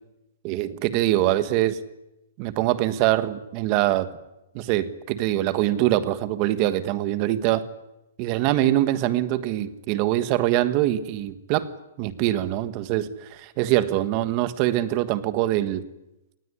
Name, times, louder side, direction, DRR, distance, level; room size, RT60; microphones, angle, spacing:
voice 1, 0.4-1.8 2.4-4.1 4.5-7.7 8.2-11.7 12.0-15.8, right 14 dB, 30° right, 13 dB, 1.4 m, -23 dB
27.0 x 20.0 x 9.8 m, 0.93 s
hypercardioid pair, 165°, 0 cm